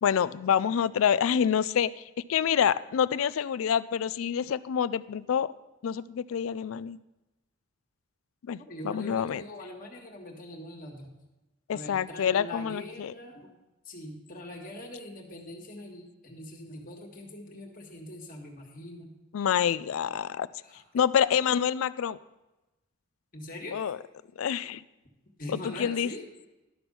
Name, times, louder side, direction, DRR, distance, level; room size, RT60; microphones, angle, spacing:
voice 1, 0.0-2.0 2.3-5.5 5.8-7.0 8.5-8.6 8.8-9.4 11.7-13.1 19.3-20.5 20.9-22.2 23.7-24.0 24.4-24.8 25.5-26.1, left 8 dB, 85° left, 16 dB, 0.4 m, -27 dB
voice 2, 8.7-11.1 11.7-13.5 13.8-19.1 20.6-20.8 23.3-23.8 25.4-26.2, left 1 dB, 40° left, 1 dB, 1.7 m, -42 dB
12.0 x 6.1 x 5.3 m, 1.0 s
head